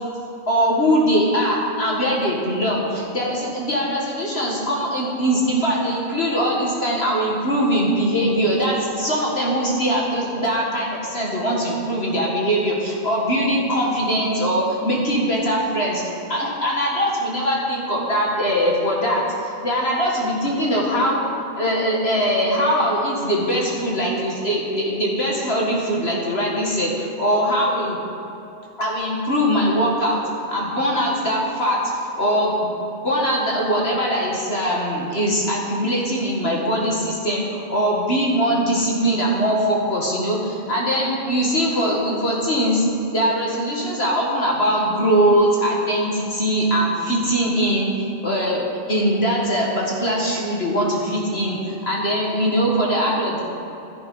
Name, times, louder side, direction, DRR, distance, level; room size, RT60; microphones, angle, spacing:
voice 1, 0.5-16.0 16.3-21.2 21.5-28.0 28.8-30.2 30.5-32.7 33.0-48.6 48.9-53.4, equal, 50° left, -3 dB, 2.0 m, -21 dB
12.0 x 11.0 x 5.5 m, 2.9 s
omnidirectional pair, 1.4 m